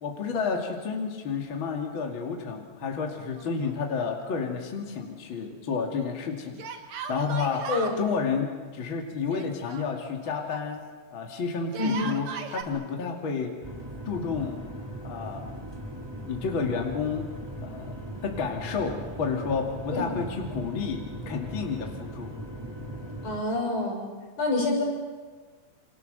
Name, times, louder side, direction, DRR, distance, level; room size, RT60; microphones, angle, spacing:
voice 1, 0.0-6.6 7.1-7.7 8.0-10.8 11.1-12.3 12.5-13.5 14.0-14.6 15.0-15.5 16.3-17.3 17.6-17.9 18.2-22.3, left 5 dB, 40° left, 1 dB, 3.0 m, -30 dB
Yell, 3.4-4.2 4.5-4.6 6.6-8.0 9.3-10.7 11.6-12.6, right 6 dB, 65° right, 2.8 m, -37 dB
voice 2, 11.8-12.1 19.9-20.0 23.2-24.1 24.4-24.8, left 2 dB, 80° left, -1 dB, 7.6 m, -27 dB
sound 1, 13.6-23.4, right 1 dB, 10° right, 3.2 m, -39 dB
28.5 x 26.5 x 6.8 m, 1.5 s
omnidirectional pair, 3.5 m